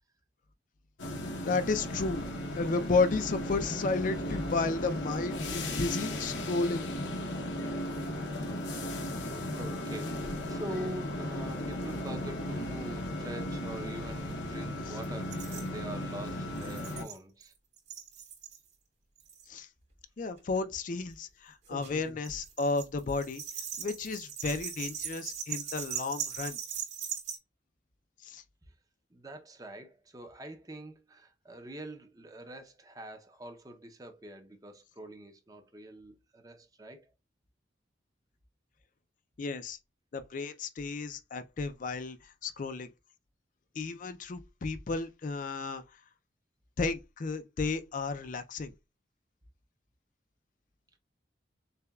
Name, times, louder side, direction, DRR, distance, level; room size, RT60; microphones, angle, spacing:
sound 1, 1.0-17.0, left 1 dB, 80° left, 0.8 m, -36 dB
voice 1, 1.4-2.3 2.5-6.9 14.9-15.0 19.5-19.7 20.2-23.4 23.8-26.6 28.2-28.4 39.4-39.8 40.1-42.9 43.7-45.8 46.8-48.7, left 3 dB, 45° left, 0.4 m, -32 dB
voice 2, 9.5-17.5 29.1-37.1, right 1 dB, 20° right, 0.6 m, -44 dB
sound 2, 15.0-15.1 15.3-15.7 16.6-17.5 17.8-18.6 19.2-19.5 20.4-20.6 21.6-27.4, right 8 dB, 60° right, 2.6 m, -40 dB
6.6 x 2.2 x 2.3 m
head